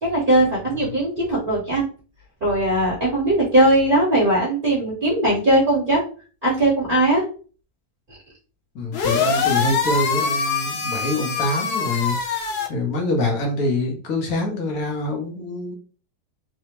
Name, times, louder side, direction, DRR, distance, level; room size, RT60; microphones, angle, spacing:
voice 1, 0.0-1.8 2.4-6.0 6.4-7.2, right 1 dB, 35° right, -7 dB, 1.0 m, -19 dB
voice 2, 8.7-15.7, left 2 dB, 65° left, 1 dB, 1.2 m, -25 dB
sound 1, 8.9-12.7, left 5 dB, 80° left, 0.5 m, -23 dB
3.3 x 2.0 x 2.9 m, 0.38 s
omnidirectional pair, 1.7 m